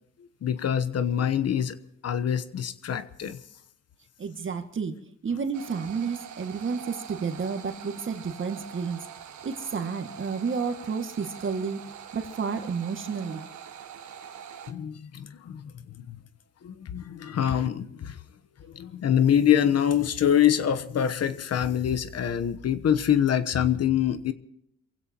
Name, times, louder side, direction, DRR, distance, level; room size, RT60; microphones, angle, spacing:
voice 1, 0.4-3.4 14.7-16.2 16.6-18.2 18.7-24.3, left 9 dB, 55° left, 1.1 m, -25 dB
voice 2, 4.2-5.0 5.2-9.0 9.4-11.8 12.1-13.5, right 5 dB, 40° right, 2.1 m, -31 dB
sound 1, 5.5-14.7, right 8 dB, 70° right, 1.7 m, -44 dB
28.0 x 16.5 x 3.0 m
cardioid pair, 90°, 30 cm